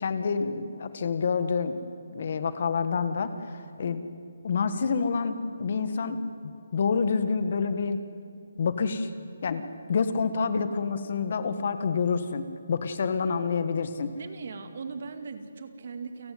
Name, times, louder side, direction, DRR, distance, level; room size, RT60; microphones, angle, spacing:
voice 1, 0.0-1.8 2.1-4.0 4.4-6.2 6.4-8.0 8.6-9.1 9.4-14.1, left 5 dB, 45° left, 11 dB, 1.6 m, -28 dB
voice 2, 14.2-16.3, right 5 dB, 50° right, 9 dB, 2.2 m, -39 dB
29.5 x 17.5 x 9.5 m, 2.4 s
hypercardioid pair, 165°, 0 cm